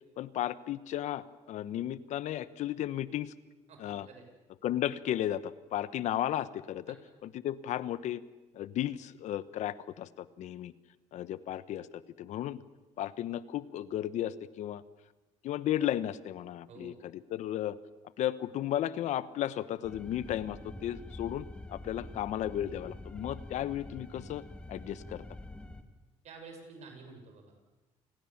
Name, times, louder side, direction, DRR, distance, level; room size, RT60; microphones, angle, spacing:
voice 1, 0.2-3.3 3.8-4.1 4.6-6.9 7.2-8.2 8.5-10.7 11.1-11.9 12.2-12.6 13.0-14.8 15.4-17.8 18.2-25.2, left 12 dB, 70° left, 16 dB, 1.0 m, -34 dB
voice 2, 3.7-4.3 6.9-7.0 16.7-17.0 26.2-27.7, right 4 dB, 65° right, 4 dB, 6.6 m, -50 dB
sound 1, 19.8-25.8, left 2 dB, 10° left, 2.0 m, -46 dB
28.5 x 19.5 x 7.3 m, 1.1 s
cardioid pair, 100°, 12 cm